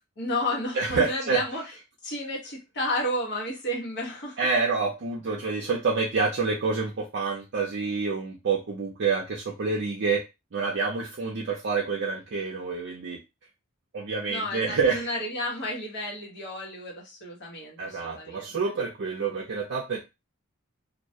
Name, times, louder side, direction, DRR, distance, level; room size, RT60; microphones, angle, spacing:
voice 1, 0.2-1.6 2.0-4.4 14.2-18.6, left 1 dB, 50° left, -2 dB, 1.0 m, -32 dB
voice 2, 0.7-1.4 4.4-10.2 10.5-13.2 13.9-15.1 17.8-20.0, right 4 dB, 55° right, -2 dB, 0.5 m, -27 dB
2.2 x 2.1 x 2.7 m, 0.24 s
head